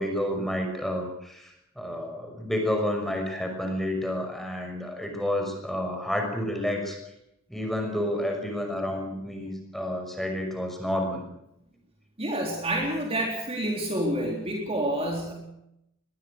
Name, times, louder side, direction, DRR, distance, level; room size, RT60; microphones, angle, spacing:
voice 1, 0.0-7.0 7.5-11.3, left 1 dB, ahead, 3 dB, 5.9 m, -30 dB
voice 2, 12.2-15.3, right 1 dB, 25° right, 0 dB, 4.0 m, -28 dB
22.5 x 20.5 x 6.5 m, 0.81 s
head